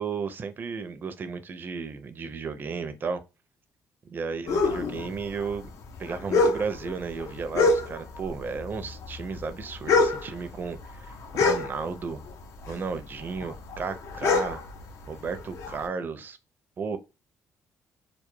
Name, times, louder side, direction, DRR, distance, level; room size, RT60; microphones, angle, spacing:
voice 1, 0.0-3.2 4.0-5.7 6.0-12.2 12.7-14.6 15.1-16.4 16.8-17.0, right 5 dB, 40° right, 0.4 m, -34 dB
sound 1, 4.5-8.3 8.5-12.3 12.6-15.8, left 3 dB, 70° left, 0.5 m, -26 dB
2.2 x 2.0 x 3.0 m
cardioid pair, 115°, 5 cm